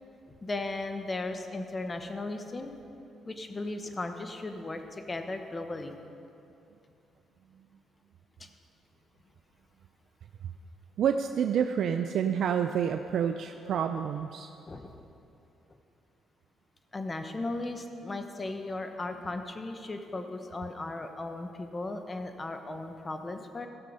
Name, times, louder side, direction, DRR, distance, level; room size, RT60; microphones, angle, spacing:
voice 1, 0.4-2.7 3.2-6.0 8.4-8.5 14.7-15.0 16.9-23.7, left 2 dB, 25° left, 6 dB, 0.9 m, -36 dB
voice 2, 11.0-14.5, right 8 dB, 70° right, 7 dB, 0.4 m, -28 dB
14.5 x 6.5 x 5.4 m, 2.8 s
cardioid pair, 90°, 0 cm